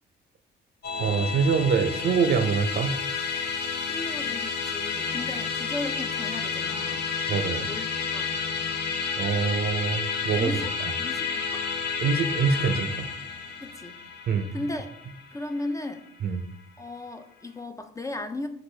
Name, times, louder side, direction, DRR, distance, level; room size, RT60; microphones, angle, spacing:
Musical instrument, 0.8-16.4, left 5 dB, 55° left, 0.6 m, -31 dB
voice 1, 1.0-3.0 7.3-7.7 9.2-10.5 12.0-13.1 14.3-14.5 16.2-16.4, right 5 dB, 55° right, 10 dB, 0.4 m, -25 dB
voice 2, 3.9-7.0 7.6-8.3 10.4-11.6 13.6-14.0 14.5-14.9 15.3-16.0 16.8-18.5, left 2 dB, 15° left, 7 dB, 0.3 m, -36 dB
sound 1, 4.9-8.9, left 5 dB, 90° left, 0.9 m, -43 dB
5.9 x 2.5 x 3.2 m, 0.77 s
cardioid pair, 90°, 20 cm